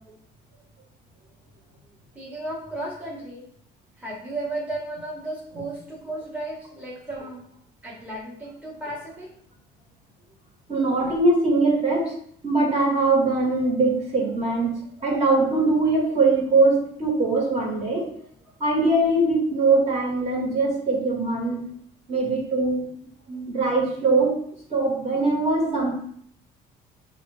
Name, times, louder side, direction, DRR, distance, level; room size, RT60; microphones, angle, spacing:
voice 1, 2.1-3.4 4.0-7.4 7.8-9.3 21.0-21.4 23.3-23.5 25.6-25.8, right 2 dB, 10° right, -6 dB, 1.2 m, -34 dB
voice 2, 10.7-12.1 12.4-14.7 15.0-18.1 18.6-21.6 22.1-22.9 23.5-24.3 24.7-25.9, right 3 dB, 40° right, -2 dB, 1.6 m, -21 dB
5.5 x 2.5 x 3.3 m, 0.64 s
cardioid pair, 110°, 17 cm